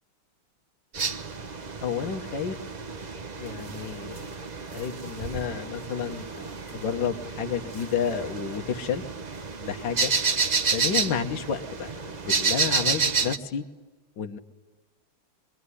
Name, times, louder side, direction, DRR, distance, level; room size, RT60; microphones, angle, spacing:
sound 1, 0.9-13.4, right 5 dB, 45° right, 0.5 m, -30 dB
voice 1, 1.8-2.6 3.4-4.3 4.7-9.0 9.6-10.1 10.7-13.6 14.2-14.4, left 7 dB, 65° left, 4 dB, 1.9 m, -31 dB
24.5 x 23.0 x 9.8 m, 1.3 s
omnidirectional pair, 2.2 m